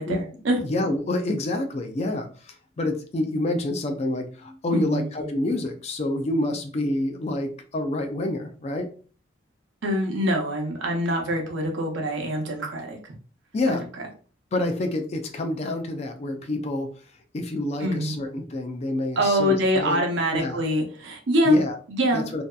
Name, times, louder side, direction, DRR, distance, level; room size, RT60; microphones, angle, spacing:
voice 1, 0.0-0.6 4.7-5.3 9.8-13.0 13.7-13.8 17.8-18.1 19.2-21.6 21.9-22.3, equal, 75° right, 2 dB, 0.7 m, -24 dB
voice 2, 0.6-2.3 2.8-8.9 13.5-13.8 14.5-16.9 17.3-20.0 20.3-20.6 21.5-21.8 22.1-22.4, left 1 dB, 35° left, 6 dB, 0.3 m, -27 dB
2.7 x 2.3 x 2.2 m, 0.39 s
head